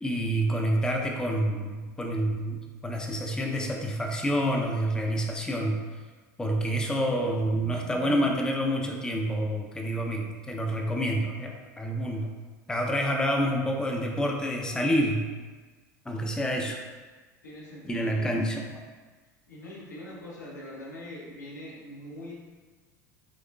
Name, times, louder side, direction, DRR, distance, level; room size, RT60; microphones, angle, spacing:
voice 1, 0.0-5.8 6.4-12.3 12.7-15.3 16.1-16.8 17.8-18.8, equal, 10° left, 0 dB, 0.4 m, -28 dB
voice 2, 17.4-18.3 19.5-22.3, left 1 dB, 85° left, -5 dB, 0.8 m, -42 dB
3.8 x 2.9 x 2.2 m, 1.4 s
hypercardioid pair, 75°, 9 cm